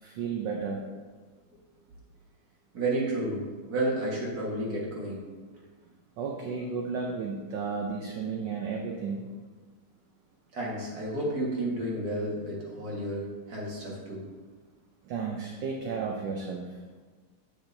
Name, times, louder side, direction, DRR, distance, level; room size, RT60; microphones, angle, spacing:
voice 1, 0.0-0.8 6.2-9.2 15.1-16.7, right 5 dB, 70° right, 1 dB, 1.2 m, -33 dB
voice 2, 2.7-3.4 3.7-5.2 5.5-5.6 10.5-14.2, right 1 dB, 45° right, -4 dB, 1.9 m, -31 dB
8.0 x 6.8 x 2.6 m, 1.4 s
omnidirectional pair, 2.4 m